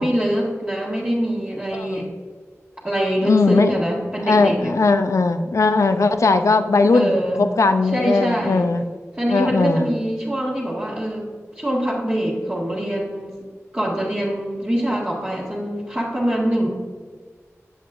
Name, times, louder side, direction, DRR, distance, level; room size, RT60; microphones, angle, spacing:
voice 1, 0.0-2.1 2.8-4.7 6.9-7.4 7.9-8.7 9.2-11.3 11.5-13.3 13.7-16.7, equal, 25° right, -8 dB, 1.6 m, -24 dB
voice 2, 1.7-2.1 3.2-3.8 4.2-8.8 9.3-9.9, left 3 dB, 80° left, 8 dB, 0.5 m, -18 dB
8.0 x 7.4 x 2.5 m, 1.5 s
wide cardioid pair, 50°, 5 cm